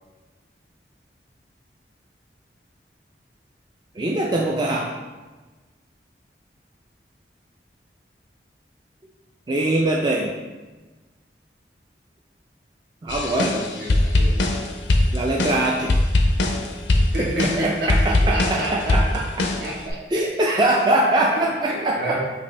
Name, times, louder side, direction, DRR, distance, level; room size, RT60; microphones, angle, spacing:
voice 1, 4.0-4.9 9.5-10.3 13.0-13.7 15.1-15.9 17.6-19.0 20.1-22.0, right 1 dB, 25° right, -2 dB, 0.3 m, -22 dB
voice 2, 13.0-14.5 17.1-20.2 21.3-22.2, right 1 dB, 70° right, -3 dB, 1.2 m, -31 dB
sound 1, 13.1-19.9, left 2 dB, 90° left, 0.5 m, -21 dB
5.5 x 2.6 x 3.2 m, 1.3 s
head